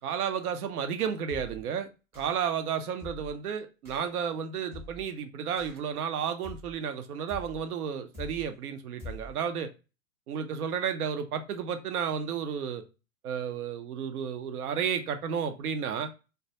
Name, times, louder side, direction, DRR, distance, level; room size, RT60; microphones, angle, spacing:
voice 1, 0.0-1.9 2.2-9.7 10.3-12.8 13.2-16.1, right 7 dB, 85° right, 8 dB, 0.6 m, -32 dB
sound 1, 1.3-1.7 2.1-2.5 3.0-3.4 3.9-4.1 4.7-5.1 5.6-6.0 6.4-6.8 7.3-7.7 8.1-8.6 9.0-9.4, left 2 dB, 5° right, 0.5 m, -45 dB
2.2 x 2.1 x 2.7 m, 0.30 s
hypercardioid pair, 125°, 44 cm